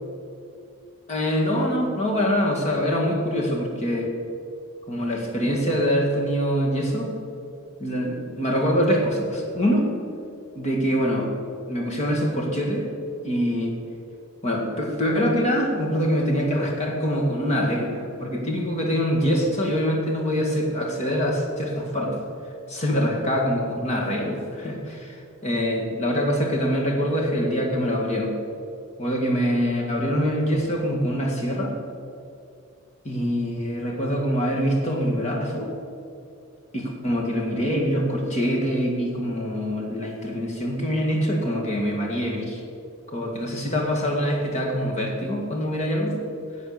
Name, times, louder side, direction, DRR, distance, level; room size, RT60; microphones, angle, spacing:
voice 1, 1.1-4.1 4.9-7.1 7.8-9.9 10.6-11.3 11.7-12.9 13.2-13.7 14.4-22.2 22.7-28.4 29.0-31.7 33.0-35.7 36.7-42.6 43.1-46.2, equal, 30° left, -1 dB, 2.0 m, -24 dB
11.5 x 8.0 x 6.7 m, 2.5 s
head